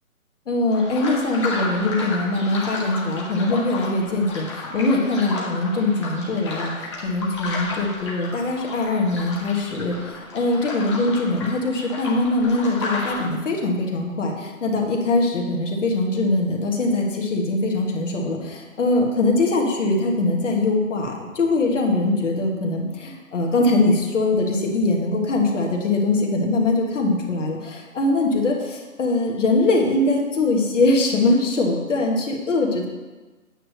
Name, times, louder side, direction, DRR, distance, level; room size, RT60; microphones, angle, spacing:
voice 1, 0.5-32.9, left 2 dB, 60° left, 0 dB, 1.6 m, -22 dB
sound 1, 0.7-13.2, left 3 dB, 20° left, 0.9 m, -33 dB
8.7 x 3.3 x 6.4 m, 1.2 s
hypercardioid pair, 160°, 42 cm